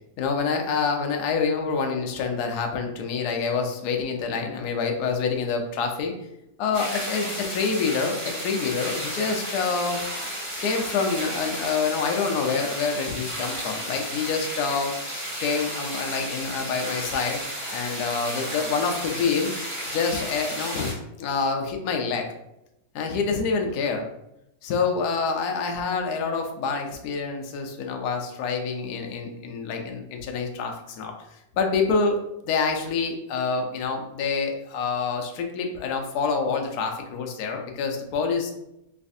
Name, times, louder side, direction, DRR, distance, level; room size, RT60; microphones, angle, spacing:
voice 1, 0.2-6.2 6.6-10.0 10.6-17.4 17.7-19.5 19.9-22.3 22.9-24.1 24.6-31.1 31.6-32.2 32.4-38.5, left 5 dB, 70° left, 3 dB, 1.0 m, -27 dB
sound 1, 6.7-20.9, equal, 30° right, 1.5 m, -33 dB
3.3 x 3.1 x 2.6 m, 0.84 s
omnidirectional pair, 2.0 m